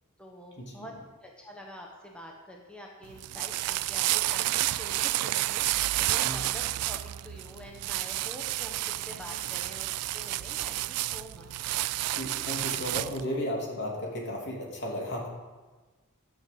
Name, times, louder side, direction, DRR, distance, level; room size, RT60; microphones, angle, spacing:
voice 1, 0.2-0.9 1.2-11.8, left 1 dB, 5° left, -1 dB, 1.1 m, -46 dB
sound 1, 3.0-13.2, right 16 dB, 90° right, 0.3 m, -30 dB
voice 2, 12.1-15.3, equal, 55° left, -1 dB, 3.1 m, -34 dB
12.0 x 6.3 x 7.7 m, 1.3 s
head